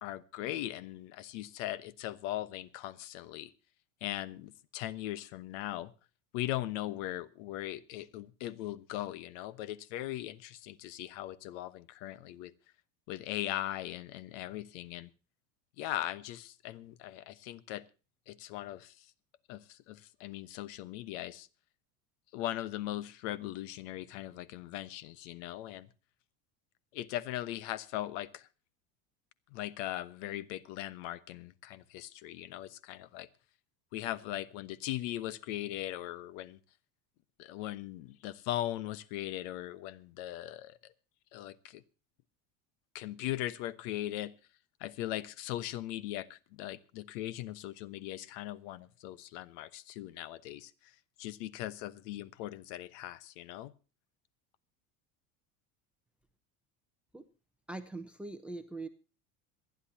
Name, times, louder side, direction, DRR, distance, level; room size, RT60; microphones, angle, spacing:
voice 1, 0.0-3.5 4.0-5.9 6.3-12.5 13.1-15.1 15.8-17.8 18.3-18.9 19.5-21.5 22.3-25.9 26.9-28.5 29.5-33.3 33.9-36.6 37.4-40.9 41.3-41.8 42.9-44.3 44.8-50.7 51.2-53.7, left 14 dB, 70° left, 18 dB, 1.1 m, -39 dB
voice 2, 57.7-58.9, right 2 dB, 5° right, 12 dB, 0.7 m, -42 dB
26.5 x 11.0 x 2.7 m, 0.34 s
cardioid pair, 160°, 38 cm